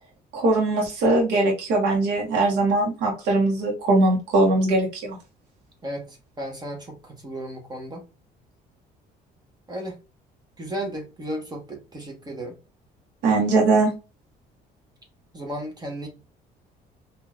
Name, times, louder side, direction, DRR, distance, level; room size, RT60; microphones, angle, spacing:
voice 1, 0.3-5.2 13.2-13.9, right 2 dB, 85° right, 1.3 m, -21 dB
voice 2, 5.8-8.0 9.7-10.0 10.6-12.5 15.3-16.1, right 1 dB, 25° right, 1.3 m, -34 dB
4.1 x 2.8 x 2.5 m
cardioid pair, 110°, 17 cm